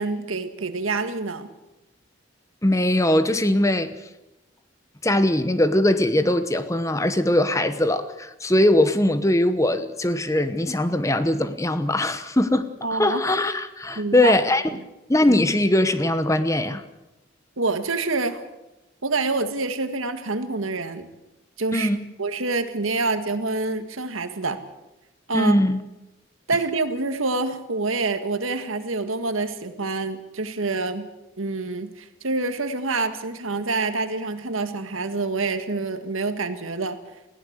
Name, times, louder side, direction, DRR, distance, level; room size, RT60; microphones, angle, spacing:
voice 1, 0.0-1.5 12.8-13.2 14.0-14.3 17.6-18.4 19.0-21.1 21.6-21.9 22.2-24.6 25.3-25.6 26.5-31.1 31.4-37.0, right 3 dB, 90° right, 1.8 m, -26 dB
voice 2, 2.6-3.9 5.0-14.6 15.1-16.8 21.7-22.0 25.3-25.8, left 1 dB, 15° left, 1.0 m, -21 dB
21.0 x 16.0 x 8.1 m
head